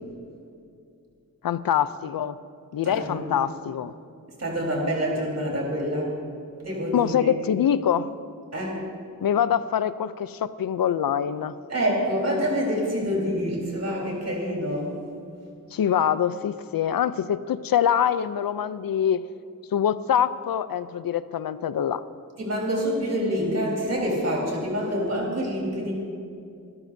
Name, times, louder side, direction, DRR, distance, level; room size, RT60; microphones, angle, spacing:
voice 1, 1.4-2.4 2.7-3.9 6.9-8.1 9.2-11.6 15.7-19.3 19.7-22.0, left 9 dB, 80° left, 14 dB, 0.5 m, -24 dB
voice 2, 2.8-3.3 4.4-6.1 6.6-7.4 8.5-8.8 11.7-14.9 22.4-25.9, equal, 50° right, -2 dB, 4.0 m, -26 dB
26.0 x 13.0 x 2.7 m, 2.5 s
wide cardioid pair, 130°, 34 cm